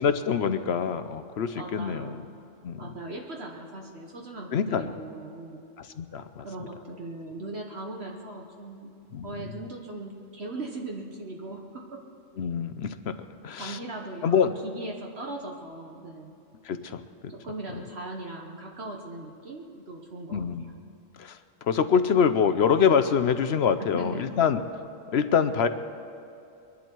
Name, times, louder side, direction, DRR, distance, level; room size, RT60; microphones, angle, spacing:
voice 1, 0.0-2.2 2.6-2.8 4.5-4.9 5.8-6.5 9.1-9.3 12.4-13.1 13.4-13.8 14.2-14.5 16.7-17.0 20.3-20.7 21.2-21.4 21.7-24.6 25.1-25.7, left 7 dB, 60° left, 11 dB, 0.9 m, -25 dB
voice 2, 1.5-2.2 2.8-5.6 6.4-8.9 9.2-11.8 13.6-16.3 17.3-20.7 23.9-24.3, right 2 dB, 55° right, 0 dB, 1.5 m, -39 dB
23.0 x 11.0 x 4.6 m, 2.6 s
omnidirectional pair, 1.3 m